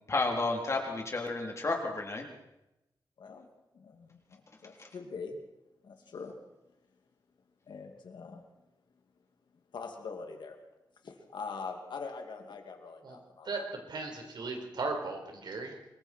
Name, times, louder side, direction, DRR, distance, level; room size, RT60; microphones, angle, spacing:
voice 1, 0.1-2.3, left 3 dB, 40° left, 1 dB, 3.8 m, -31 dB
voice 2, 3.7-5.4 5.8-6.3 7.7-8.4 9.7-10.6 11.0-13.6, left 4 dB, 90° left, 4 dB, 2.7 m, -43 dB
voice 3, 13.9-15.7, right 3 dB, 75° right, 3 dB, 4.8 m, -36 dB
26.5 x 22.0 x 4.6 m, 0.92 s
wide cardioid pair, 120°, 8 cm